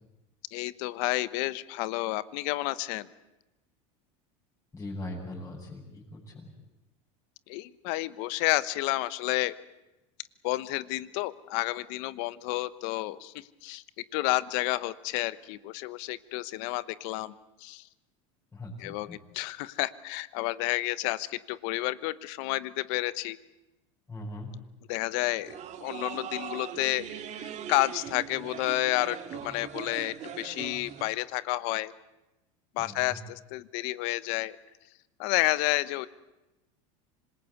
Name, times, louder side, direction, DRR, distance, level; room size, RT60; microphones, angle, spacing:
voice 1, 0.5-3.1 7.5-9.5 10.4-13.8 14.1-17.3 17.6-17.9 18.8-23.4 24.9-25.5 25.8-27.1 27.3-31.9 32.7-34.6 35.2-36.1, left 18 dB, 65° left, 16 dB, 1.1 m, -30 dB
voice 2, 4.7-6.6 18.5-19.2 24.1-24.5 32.8-33.2, left 1 dB, 15° left, -6 dB, 7.3 m, -40 dB
sound 1, 25.2-31.0, right 9 dB, 45° right, 2.1 m, -41 dB
26.0 x 21.0 x 8.1 m, 0.98 s
supercardioid pair, 110°, 17 cm